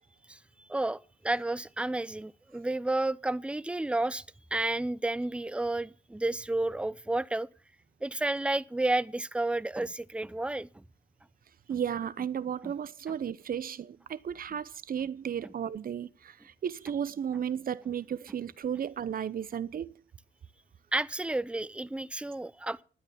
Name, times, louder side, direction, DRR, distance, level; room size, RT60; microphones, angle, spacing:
voice 1, 0.7-4.2 4.5-7.5 8.0-10.8 12.6-12.7 20.9-22.8, right 2 dB, 5° right, 0.6 m, -31 dB
voice 2, 11.7-19.9, right 8 dB, 45° right, 0.8 m, -34 dB
12.0 x 9.8 x 5.7 m
cardioid pair, 90°, 20 cm